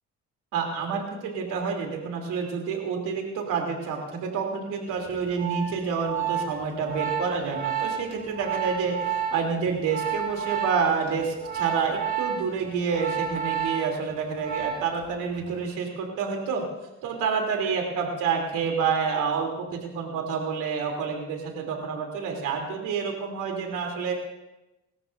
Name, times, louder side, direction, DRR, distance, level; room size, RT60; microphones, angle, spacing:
voice 1, 0.5-9.0 9.3-16.6 17.0-24.1, right 5 dB, 90° right, 1 dB, 3.1 m, -28 dB
Organ, 5.1-15.1 15.3-15.7, right 8 dB, 35° right, 4.8 m, -31 dB
25.0 x 13.5 x 2.6 m, 1.0 s
cardioid pair, 90°, 30 cm